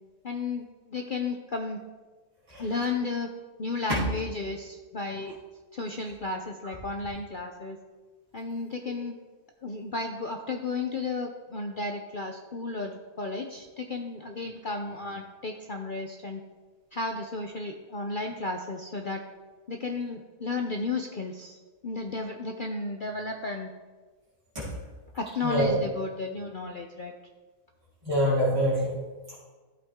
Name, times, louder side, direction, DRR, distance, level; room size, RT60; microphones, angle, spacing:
voice 1, 0.2-1.8 2.6-3.3 3.6-5.4 5.7-7.8 8.3-9.1 9.6-16.4 16.9-19.2 19.7-21.6 21.8-23.7 25.1-27.1, left 3 dB, 55° left, 3 dB, 0.5 m, -33 dB
voice 2, 25.4-25.8 28.0-29.0 29.3-29.4, equal, 20° right, -11 dB, 3.9 m, -25 dB
13.0 x 8.4 x 3.7 m, 1.3 s
omnidirectional pair, 1.7 m